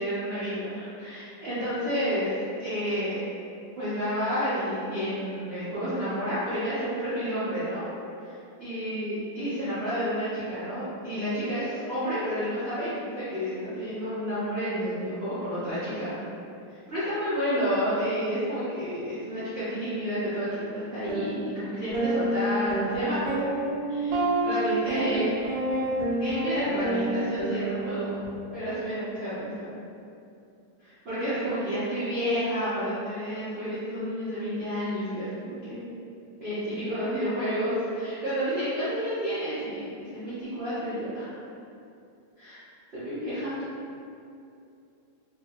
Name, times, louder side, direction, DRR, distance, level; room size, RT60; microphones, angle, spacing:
voice 1, 0.0-3.2 3.8-7.8 8.2-16.2 16.9-23.2 23.9-25.3 26.1-28.2 28.5-29.7 30.8-35.9 36.4-41.3 42.4-42.6 42.9-43.6, equal, 50° right, -15 dB, 0.8 m, -30 dB
sound 1, 21.1-21.3 21.9-28.3, right 1 dB, 65° right, 1.2 m, -28 dB
2.8 x 2.6 x 2.7 m, 2.6 s
omnidirectional pair, 2.0 m